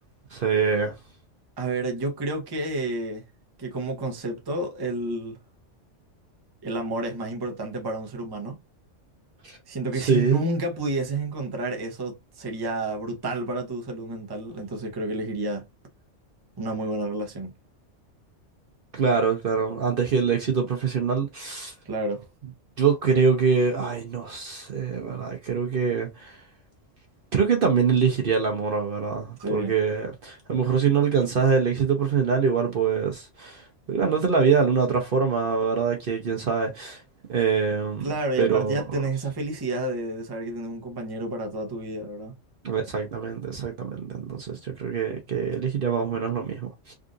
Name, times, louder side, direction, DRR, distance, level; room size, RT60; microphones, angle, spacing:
voice 1, 0.3-0.9 9.4-9.6 10.0-10.4 18.9-21.7 22.8-26.4 27.3-37.0 37.3-38.8 42.6-46.9, right 6 dB, 55° right, 0.8 m, -24 dB
voice 2, 1.6-3.2 3.6-5.4 6.6-8.6 9.7-15.7 16.6-17.5 21.8-22.3 29.4-29.7 38.0-42.3, right 2 dB, 25° right, 0.7 m, -30 dB
3.7 x 2.5 x 2.5 m
omnidirectional pair, 1.3 m